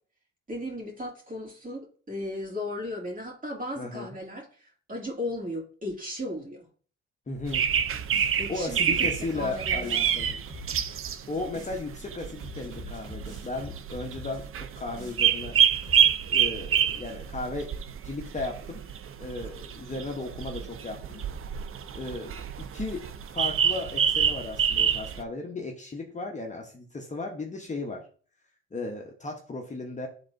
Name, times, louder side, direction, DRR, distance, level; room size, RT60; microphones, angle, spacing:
voice 1, 0.5-6.7 8.4-10.0, left 1 dB, 30° right, -1 dB, 2.4 m, -36 dB
voice 2, 3.8-4.2 7.3-7.7 8.2-10.4 11.3-15.6 16.3-17.7 18.0-18.8 19.2-21.2 21.9-23.1 23.3-28.1 28.7-30.1, left 3 dB, 25° left, 1 dB, 1.0 m, -35 dB
sound 1, 7.4-8.4 8.8-11.8 12.2-14.4 14.8-15.3 15.6-16.0, left 3 dB, 85° right, 2.8 m, -44 dB
sound 2, 7.5-25.2, right 8 dB, 45° right, 0.5 m, -27 dB
11.0 x 3.8 x 2.6 m, 0.43 s
cardioid pair, 90°, 30 cm